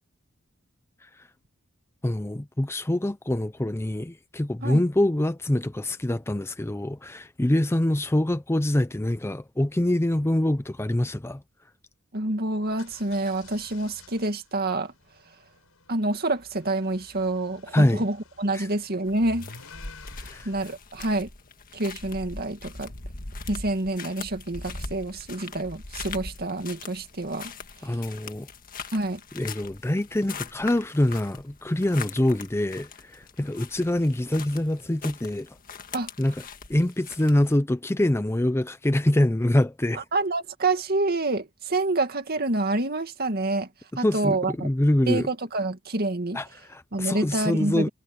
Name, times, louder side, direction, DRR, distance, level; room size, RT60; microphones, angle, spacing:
voice 1, 2.0-11.4 17.7-18.0 18.5-18.7 20.2-20.5 27.8-28.5 29.3-35.5 36.2-36.4 36.7-40.0 43.9-45.3 46.3-47.9, left 1 dB, 10° left, 0.5 m, -25 dB
voice 2, 12.1-14.9 15.9-19.5 20.5-21.3 21.7-22.9 23.5-27.5 28.9-29.2 35.9-36.1 40.0-43.7 44.0-44.5 45.1-46.4 46.9-47.9, right 2 dB, 50° right, 2.2 m, -27 dB
sound 1, 12.6-20.7, left 3 dB, 90° left, 5.7 m, -51 dB
sound 2, 19.1-37.6, left 4 dB, 45° left, 1.7 m, -41 dB
head